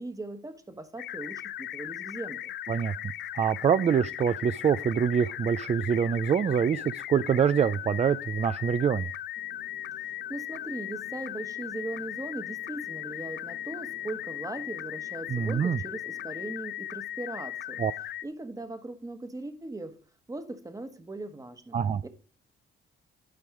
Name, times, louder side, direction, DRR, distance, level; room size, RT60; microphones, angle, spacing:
voice 1, 0.0-2.5 10.3-17.8 18.2-20.0 20.3-22.1, right 2 dB, 15° right, 1.3 m, -39 dB
sound 1, 1.0-18.2, left 12 dB, 60° left, 0.5 m, -38 dB
voice 2, 3.3-9.1 15.3-15.8 17.8-17.9 21.7-22.0, right 7 dB, 35° right, 0.4 m, -25 dB
sound 2, 9.3-16.6, left 8 dB, 85° left, 1.2 m, -54 dB
11.5 x 5.4 x 5.0 m
cardioid pair, 90°, 20 cm